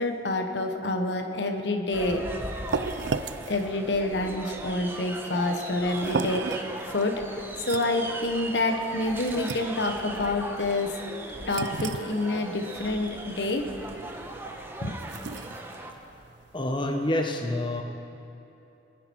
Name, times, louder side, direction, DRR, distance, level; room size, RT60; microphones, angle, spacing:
voice 1, 0.0-2.2 3.5-10.9 11.5-13.7 14.8-15.0, left 2 dB, 80° left, 5 dB, 1.1 m, -28 dB
sound 1, 1.9-15.9, right 1 dB, 15° right, 1.0 m, -38 dB
sound 2, 2.0-16.9, right 4 dB, 90° right, 0.5 m, -37 dB
voice 2, 16.5-17.8, left 1 dB, 30° left, 3 dB, 0.9 m, -27 dB
22.0 x 9.9 x 4.6 m, 2.8 s
head